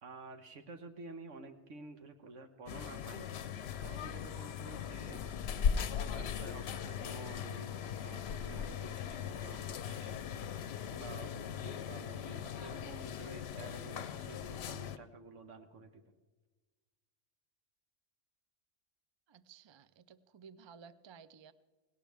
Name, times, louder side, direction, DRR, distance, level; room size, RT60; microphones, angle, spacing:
voice 1, 0.0-3.3 3.8-5.2 6.1-10.6 10.9-16.0, right 3 dB, 90° right, 6 dB, 1.5 m, -51 dB
sound 1, 2.7-15.0, left 7 dB, 65° left, 0.9 m, -39 dB
voice 2, 19.3-21.5, right 6 dB, 45° right, 15 dB, 0.3 m, -56 dB
18.0 x 17.5 x 3.5 m, 1.3 s
omnidirectional pair, 1.2 m